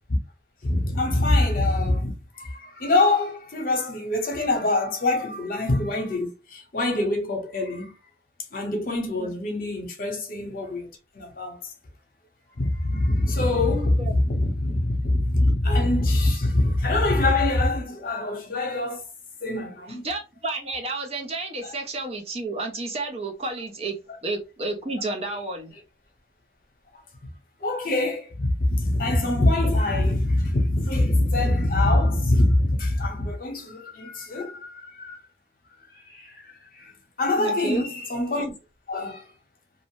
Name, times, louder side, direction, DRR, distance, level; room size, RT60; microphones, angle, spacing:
voice 1, 0.6-2.1 2.4-7.9 8.5-10.9 11.1-11.6 12.6-19.0 19.4-20.0 25.3-25.4 27.6-35.2 36.1-36.3 37.2-38.5 38.9-39.2, left 2 dB, 50° left, 0.8 m, -24 dB
voice 2, 19.9-25.7 37.4-37.9, right 2 dB, 35° right, 0.6 m, -31 dB
2.6 x 2.1 x 3.0 m
head